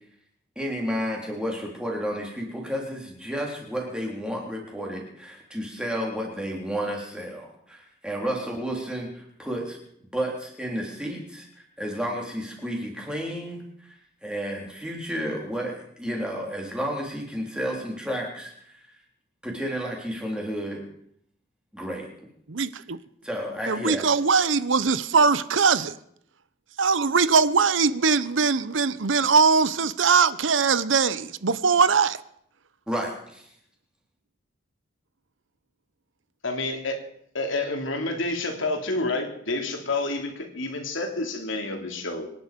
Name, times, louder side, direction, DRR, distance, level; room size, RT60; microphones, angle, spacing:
voice 1, 0.6-9.8 10.1-11.5 11.8-13.9 14.2-18.8 19.4-20.8 21.7-22.1 23.2-24.0 32.9-33.5, equal, 5° right, 3.6 m, -31 dB
voice 2, 22.5-23.0 23.7-25.9 26.8-32.2, right 5 dB, 75° right, 0.8 m, -21 dB
voice 3, 36.4-37.0 37.3-42.3, left 2 dB, 80° left, 3.1 m, -29 dB
25.5 x 11.0 x 5.3 m
head